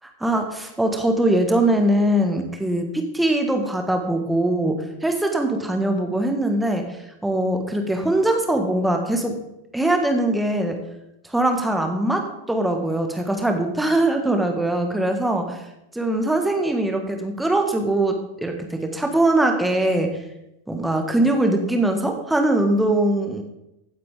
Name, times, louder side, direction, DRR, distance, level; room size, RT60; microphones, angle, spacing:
voice 1, 0.2-6.8 7.2-9.3 9.7-10.8 11.3-15.4 15.9-20.2 20.7-23.4, right 1 dB, 5° right, 4 dB, 1.7 m, -21 dB
15.5 x 8.7 x 3.7 m, 0.88 s
figure-of-eight pair, 90°, 0 cm